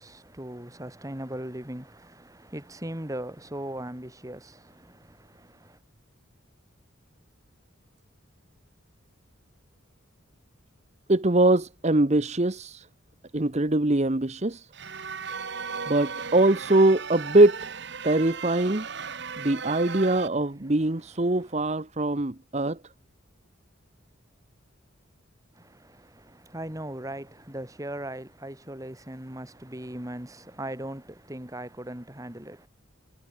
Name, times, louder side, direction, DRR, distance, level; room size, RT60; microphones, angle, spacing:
voice 1, 0.0-5.8 21.3-21.6 25.6-32.7, right 1 dB, 15° right, 2.3 m, -39 dB
voice 2, 11.1-12.9 13.3-14.7 15.9-17.6 18.0-18.9 19.4-22.8, right 2 dB, 35° right, 1.1 m, -22 dB
casio blur, 14.7-20.3, right 5 dB, 55° right, 1.4 m, -36 dB
head